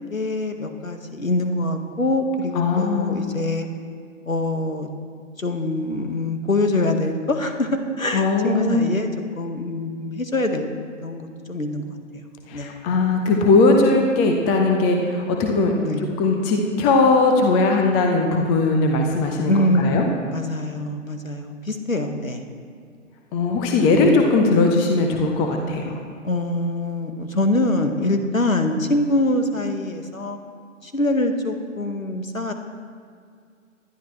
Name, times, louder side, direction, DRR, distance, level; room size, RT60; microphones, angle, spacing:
voice 1, 0.1-3.7 4.3-4.9 5.4-9.1 9.3-10.7 11.0-12.2 12.5-12.7 15.8-16.1 19.5-22.4 23.9-24.3 26.2-30.4 30.8-32.5, left 2 dB, 80° left, 6 dB, 1.7 m, -24 dB
voice 2, 2.6-3.2 8.1-8.8 12.5-15.7 16.2-20.0 23.3-26.0, left 3 dB, 10° left, 2 dB, 0.7 m, -19 dB
20.0 x 12.5 x 3.2 m, 2.2 s
figure-of-eight pair, 125°, 40 cm